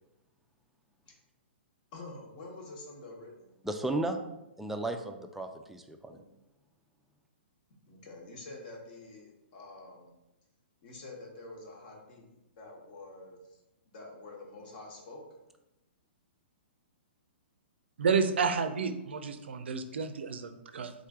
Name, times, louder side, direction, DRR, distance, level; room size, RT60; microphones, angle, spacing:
voice 1, 1.9-3.5 6.1-6.2 7.9-10.1 10.8-12.3 12.6-13.6 13.8-15.2, left 2 dB, 50° left, 0 dB, 1.2 m, -47 dB
voice 2, 3.6-4.2 4.6-6.2, right 2 dB, 5° right, 5 dB, 0.3 m, -34 dB
voice 3, 18.0-20.9, right 5 dB, 75° right, 9 dB, 0.4 m, -30 dB
3.8 x 3.2 x 3.6 m, 0.93 s
hypercardioid pair, 125°, 6 cm